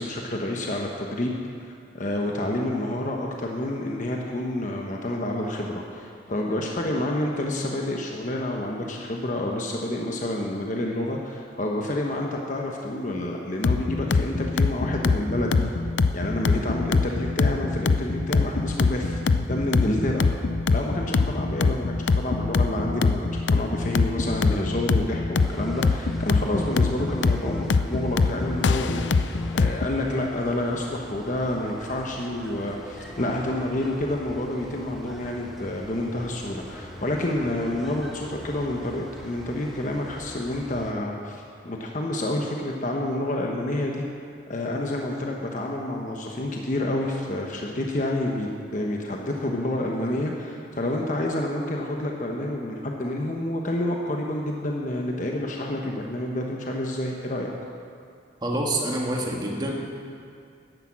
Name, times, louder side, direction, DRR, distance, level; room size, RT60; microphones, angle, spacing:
voice 1, 0.0-1.4 1.9-15.7 16.1-19.2 19.5-20.3 20.7-44.0 44.5-57.5, left 1 dB, 40° left, 0 dB, 1.1 m, -29 dB
sound 1, 13.6-29.9, left 4 dB, 75° left, 0.5 m, -23 dB
sound 2, 25.3-40.9, equal, ahead, 1.3 m, -43 dB
voice 2, 58.4-59.7, right 1 dB, 20° right, -1 dB, 1.7 m, -26 dB
12.0 x 10.0 x 7.4 m, 2.4 s
head